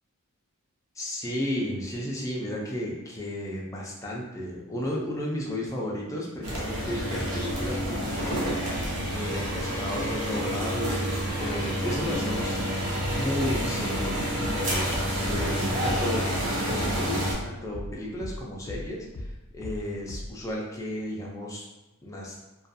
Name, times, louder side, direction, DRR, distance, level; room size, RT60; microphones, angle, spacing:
voice 1, 0.9-8.6 9.1-12.9 13.1-21.6 22.0-22.4, left 1 dB, 15° left, -3 dB, 0.4 m, -33 dB
sound 1, 6.4-17.3, equal, 60° right, 0.6 m, -29 dB
sound 2, 13.0-17.9 18.2-20.4, left 1 dB, 75° left, 0.5 m, -37 dB
2.5 x 2.3 x 2.6 m, 1.0 s
head